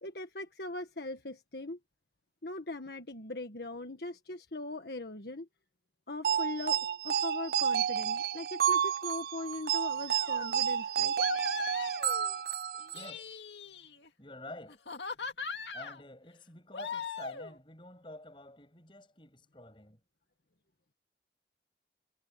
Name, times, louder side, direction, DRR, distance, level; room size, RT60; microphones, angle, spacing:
voice 1, 0.0-1.8 2.4-5.5 6.1-6.8 7.0-11.1, left 2 dB, 65° left, 1.5 m, -40 dB
sound 1, 6.2-13.1, right 8 dB, 60° right, 0.3 m, -30 dB
sound 2, 10.1-10.6 11.2-12.4 12.8-14.1 14.7-16.0 16.7-17.6, left 5 dB, 80° left, 2.2 m, -40 dB
voice 2, 12.9-13.3 14.2-14.8 15.7-20.0, left 1 dB, 30° left, 6.8 m, -49 dB
head